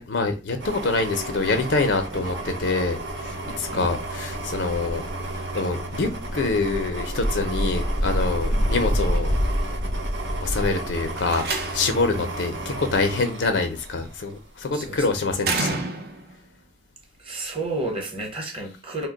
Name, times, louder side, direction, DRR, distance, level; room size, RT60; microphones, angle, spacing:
voice 1, 0.0-5.0 5.3-9.4 10.4-15.8, left 3 dB, 80° left, 0.5 m, -25 dB
sound 1, 0.6-14.3 14.7-14.9, right 1 dB, 85° right, 0.9 m, -29 dB
voice 2, 3.4-3.9 8.5-8.7 12.1-12.3 14.7-15.0 17.2-19.1, right 2 dB, 30° right, 0.9 m, -32 dB
Slam, 11.1-12.1 13.6-14.1 15.4-16.4, right 3 dB, 55° right, 0.6 m, -29 dB
2.7 x 2.2 x 3.8 m
head